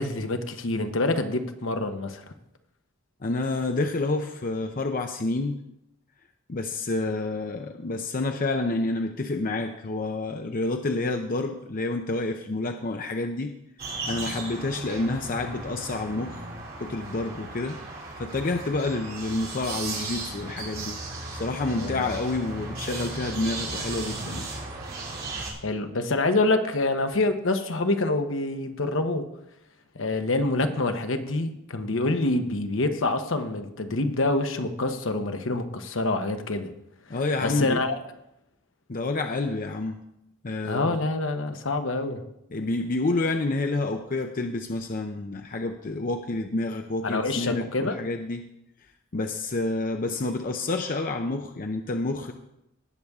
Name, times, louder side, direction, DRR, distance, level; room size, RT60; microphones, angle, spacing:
voice 1, 0.0-2.2 21.7-22.1 25.6-29.3 29.9-36.7 37.4-38.0 40.6-42.2 47.0-48.0, left 2 dB, 65° left, 7 dB, 1.0 m, -26 dB
voice 2, 3.2-5.6 6.5-13.5 14.0-16.4 16.8-17.8 18.2-21.0 21.3-24.5 37.1-37.8 38.9-40.0 40.4-41.0 42.5-48.4 49.1-52.3, left 2 dB, 45° left, 5 dB, 0.7 m, -29 dB
sound 1, 13.8-25.5, right 3 dB, 50° right, 3.0 m, -36 dB
19.0 x 6.9 x 3.6 m, 0.83 s
head